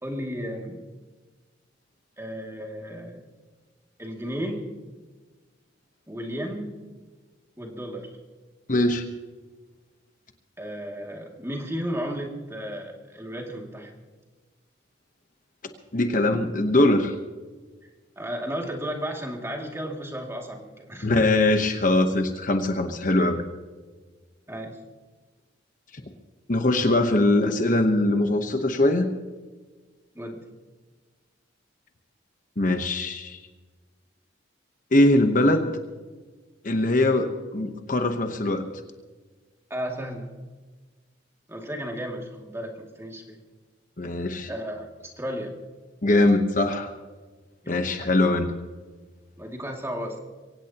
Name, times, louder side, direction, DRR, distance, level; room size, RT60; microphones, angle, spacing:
voice 1, 0.0-0.8 2.2-3.2 4.0-4.6 6.1-6.7 7.6-8.2 10.6-14.0 18.2-21.1 23.1-23.3 24.5-24.8 30.1-30.4 39.7-40.3 41.5-43.4 44.5-44.9 45.2-45.5 47.6-47.8 49.4-50.2, equal, 15° right, 0 dB, 2.4 m, -34 dB
voice 2, 8.7-9.1 15.9-17.2 21.0-23.4 25.9-26.0 26.5-29.1 32.6-33.4 34.9-35.8 36.6-38.6 44.0-44.5 46.0-46.9 47.7-48.5, left 2 dB, 40° left, 6 dB, 1.0 m, -22 dB
23.5 x 17.5 x 2.9 m, 1.4 s
head